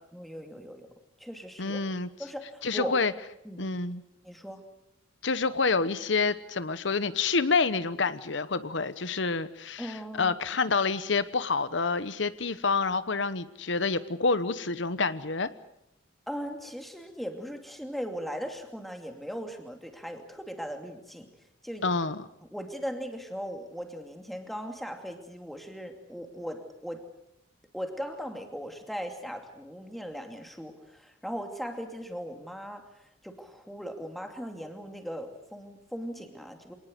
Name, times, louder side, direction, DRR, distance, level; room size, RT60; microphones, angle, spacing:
voice 1, 0.1-0.9 1.2-1.8 2.2-3.0 3.4-3.7 4.2-4.7 9.8-10.4 16.3-21.3 21.6-21.9 22.5-27.1 27.7-36.7, equal, ahead, 4 dB, 2.6 m, -38 dB
voice 2, 1.6-2.1 2.6-3.1 3.6-4.0 5.2-15.5 21.8-22.3, left 4 dB, 65° left, 14 dB, 1.0 m, -28 dB
26.5 x 19.0 x 7.9 m, 0.84 s
head